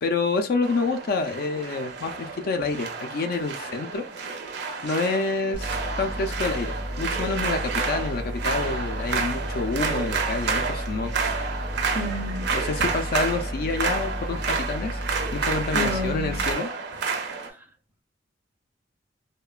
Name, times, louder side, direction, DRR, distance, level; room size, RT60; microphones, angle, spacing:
voice 1, 0.0-4.0 4.8-11.1 12.5-15.0 15.3-16.7, left 3 dB, 50° left, 0.4 m, -28 dB
sound 1, 0.6-17.5, right 5 dB, 60° right, 0.5 m, -30 dB
sound 2, 5.5-16.5, equal, 25° left, 0.7 m, -33 dB
voice 2, 11.9-12.5 15.7-16.4, left 1 dB, 10° right, 0.5 m, -30 dB
2.9 x 2.1 x 2.3 m
head